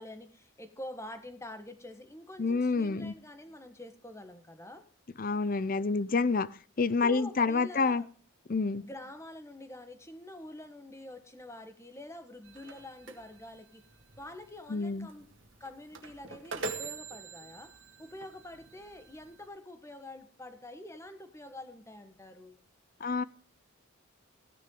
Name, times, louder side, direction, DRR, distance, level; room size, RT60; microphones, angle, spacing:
voice 1, 0.0-4.8 7.0-8.0 8.8-13.8 14.2-15.3 15.6-17.7 18.0-22.6, left 1 dB, 15° left, 1.3 m, -46 dB
voice 2, 2.4-3.1 5.2-6.5 6.8-8.0 8.5-8.9 14.7-15.1 23.0-23.2, left 4 dB, 40° left, 0.5 m, -28 dB
sound 1, 12.4-19.5, right 3 dB, 60° right, 1.9 m, -44 dB
15.0 x 10.0 x 3.8 m
head